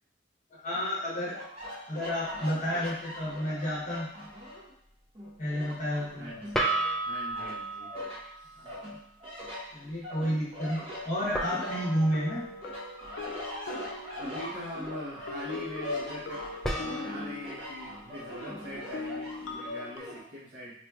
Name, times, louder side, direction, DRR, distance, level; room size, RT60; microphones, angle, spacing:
voice 1, 0.5-1.4 1.9-4.1 5.4-6.3 8.6-8.9 9.7-12.5, equal, 45° left, -6 dB, 1.0 m, -31 dB
sound 1, 1.3-4.7 5.1-6.9 7.3-8.2 8.6-12.3 12.6-20.2, left 1 dB, 35° right, 1.0 m, -41 dB
sound 2, 6.5-8.9 11.3-13.8 16.6-19.7, right 2 dB, 5° left, 0.3 m, -36 dB
voice 2, 7.1-7.9 8.4-8.7 14.1-20.7, equal, 75° right, -8 dB, 0.9 m, -42 dB
sound 3, 10.5-10.6 11.6-14.8 15.3-17.9 18.9-20.0, left 3 dB, 80° left, 0.4 m, -41 dB
4.1 x 3.0 x 2.3 m, 0.74 s
head